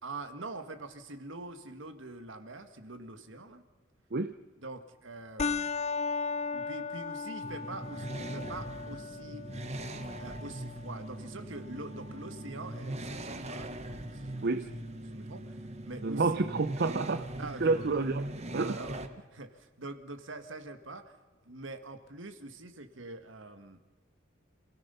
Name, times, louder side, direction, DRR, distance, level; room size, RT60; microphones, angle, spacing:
voice 1, 0.0-3.6 4.6-5.7 6.5-9.5 10.2-13.7 14.1-16.5 17.4-17.9 18.5-19.0 19.3-21.1 21.4-23.8, right 2 dB, 70° right, 8 dB, 1.7 m, -44 dB
sound 1, 5.4-14.4, left 4 dB, 35° left, 0.6 m, -38 dB
sound 2, 7.4-19.1, right 1 dB, 35° right, 1.2 m, -41 dB
voice 2, 16.0-17.3 17.6-18.2 18.5-18.8, right 3 dB, 55° right, 9 dB, 0.7 m, -29 dB
27.5 x 17.0 x 5.7 m, 1.3 s
head